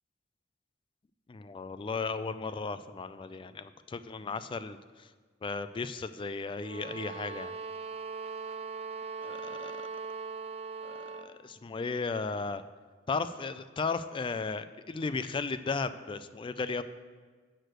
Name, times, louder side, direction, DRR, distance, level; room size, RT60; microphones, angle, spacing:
voice 1, 1.3-5.1 5.4-7.5 9.2-9.7 10.8-12.6 13.1-16.8, left 4 dB, 25° left, 12 dB, 0.3 m, -35 dB
sound 1, 6.6-11.3, right 5 dB, 35° right, 0.5 m, -40 dB
6.6 x 6.5 x 7.7 m, 1.5 s
head